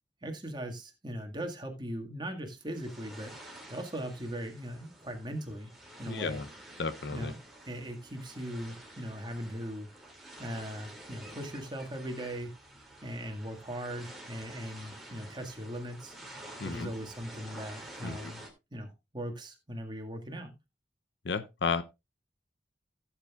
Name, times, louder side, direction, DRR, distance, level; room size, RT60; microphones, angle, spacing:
voice 1, 0.2-3.4 3.7-5.7 6.0-6.4 7.1-7.4 7.6-9.9 10.4-12.5 13.0-16.1 16.6-18.4 18.7-20.5, equal, 25° right, 1.8 m, -39 dB
sound 1, 2.7-18.5, right 1 dB, ahead, 2.5 m, -50 dB
voice 2, 6.1-6.5 6.8-7.3 16.6-16.9 18.0-18.3 21.2-21.8, left 4 dB, 75° left, 0.7 m, -33 dB
16.5 x 7.8 x 2.4 m
head